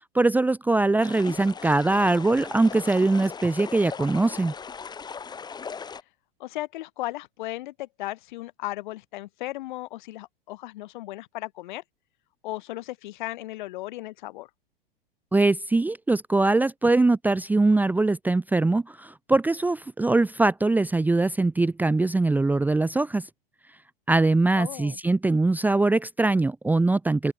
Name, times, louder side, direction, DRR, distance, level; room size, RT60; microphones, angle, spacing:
voice 1, 0.1-4.5 15.3-23.3 24.1-27.3, right 2 dB, 5° right, 0.9 m, -22 dB
sound 1, 1.0-6.0, left 6 dB, 15° left, 1.4 m, -38 dB
voice 2, 6.4-11.8 12.4-14.5 24.5-25.0, left 17 dB, 55° left, 3.4 m, -36 dB
open air
figure-of-eight pair, 95°, 29 cm